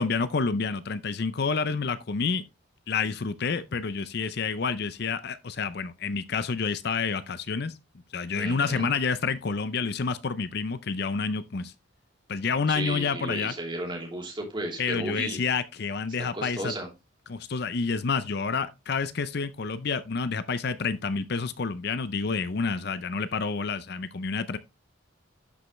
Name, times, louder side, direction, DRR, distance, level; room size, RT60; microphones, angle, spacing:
voice 1, 0.0-2.4 2.9-7.8 8.1-11.7 12.3-13.5 14.8-16.7 17.3-24.6, left 5 dB, 55° left, 0.6 m, -29 dB
voice 2, 8.3-8.9 12.7-15.4 16.3-16.9, right 1 dB, 25° right, 2.9 m, -34 dB
11.5 x 5.5 x 3.1 m
head